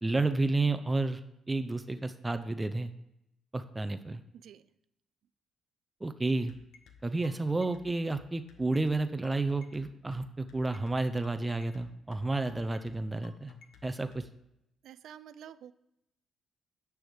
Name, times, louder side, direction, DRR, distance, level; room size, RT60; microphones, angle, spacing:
voice 1, 0.0-1.2 1.5-2.9 3.5-4.2 6.0-6.5 7.0-13.5 13.8-14.2, right 2 dB, 15° right, 10 dB, 0.5 m, -31 dB
sound 1, 6.5-14.3, left 7 dB, 80° left, 0.9 m, -55 dB
voice 2, 14.8-15.7, right 9 dB, 75° right, 15 dB, 0.4 m, -49 dB
9.9 x 3.5 x 6.3 m, 0.83 s
cardioid pair, 90°, 0 cm